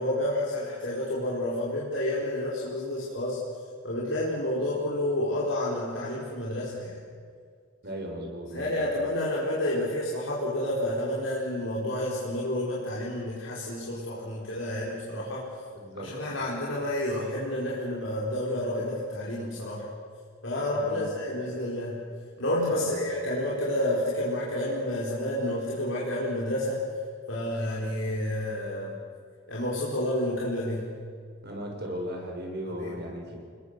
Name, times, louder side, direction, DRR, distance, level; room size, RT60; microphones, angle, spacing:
voice 1, 0.0-3.4 3.8-7.0 8.5-15.5 16.0-19.9 20.4-22.0 22.4-26.8 27.3-28.9 29.5-30.8 32.8-33.0, left 1 dB, 75° left, -5 dB, 4.5 m, -30 dB
voice 2, 7.8-8.9 14.9-15.0 15.7-16.3 20.7-21.1 22.7-23.0 31.4-33.4, equal, 55° right, 1 dB, 6.2 m, -37 dB
28.5 x 21.0 x 6.8 m, 2.1 s
head